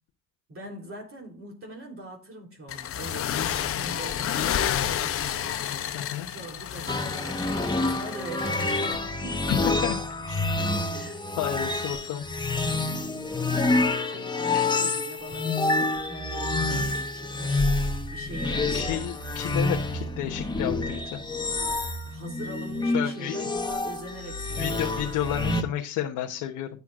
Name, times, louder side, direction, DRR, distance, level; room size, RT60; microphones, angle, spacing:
voice 1, 0.5-5.6 6.3-9.8 10.6-11.3 12.8-17.8 18.1-19.0 22.1-25.1 25.5-25.6, right 1 dB, 40° right, 3.5 m, -42 dB
sound 1, 2.7-9.0, left 10 dB, 45° left, 0.8 m, -30 dB
voice 2, 5.9-6.3 9.5-10.0 10.3-10.4 11.4-12.2 14.5-14.7 18.4-21.2 22.9-23.5 24.6-26.7, left 11 dB, 75° left, 1.2 m, -31 dB
sound 2, 6.9-25.6, left 2 dB, 15° left, 1.2 m, -28 dB
12.5 x 8.4 x 2.5 m
supercardioid pair, 85°, 32 cm